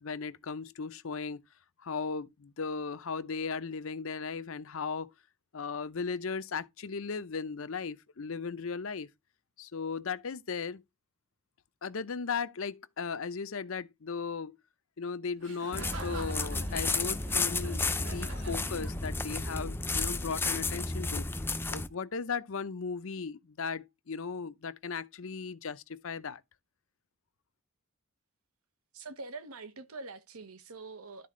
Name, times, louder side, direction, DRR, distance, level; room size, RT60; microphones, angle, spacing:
voice 1, 0.0-1.4 1.8-5.1 5.5-9.1 9.6-10.8 11.8-14.6 15.0-21.3 21.7-26.4, left 5 dB, 70° left, 0.6 m, -37 dB
Laughter, 15.4-19.3, right 3 dB, 60° right, 2.1 m, -46 dB
sound 1, 15.7-21.9, left 3 dB, 10° left, 0.5 m, -32 dB
voice 2, 28.9-31.3, right 3 dB, 90° right, 1.2 m, -44 dB
12.0 x 4.1 x 3.7 m
head